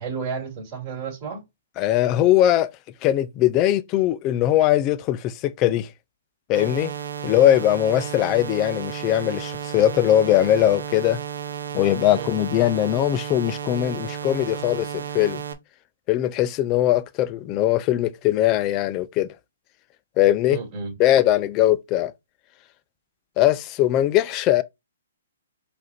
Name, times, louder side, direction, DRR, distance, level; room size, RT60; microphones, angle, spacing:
voice 1, 0.0-1.4 12.1-12.3 20.5-20.9, right 5 dB, 25° right, 2.6 m, -32 dB
voice 2, 1.8-2.7 3.0-5.9 6.5-6.9 7.2-11.2 11.7-15.4 16.1-19.3 20.2-20.6 21.0-22.1 23.4-24.6, left 13 dB, 30° left, 0.4 m, -20 dB
sound 1, 6.5-15.5, right 8 dB, 75° right, 0.7 m, -33 dB
4.9 x 2.6 x 4.1 m
hypercardioid pair, 140°, 0 cm